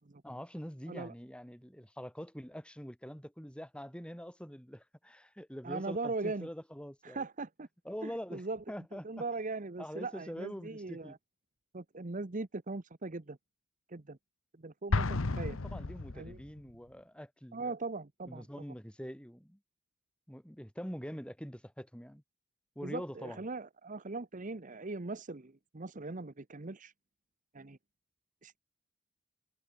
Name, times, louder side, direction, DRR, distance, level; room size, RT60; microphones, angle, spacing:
voice 1, 0.2-7.2 7.9-9.2 9.8-11.2 15.2-17.7 18.3-19.6 20.3-22.2 22.8-23.4, equal, 5° left, 5.4 m, -44 dB
voice 2, 5.6-6.5 7.0-7.7 8.0-8.6 8.9-11.2 11.7-13.4 13.9-14.2 14.6-15.6 16.1-16.4 17.5-18.5 22.8-26.9 27.5-27.8 28.4-28.6, right 3 dB, 35° right, 0.9 m, -40 dB
Explosion, 14.9-16.6, left 3 dB, 65° left, 1.0 m, -32 dB
head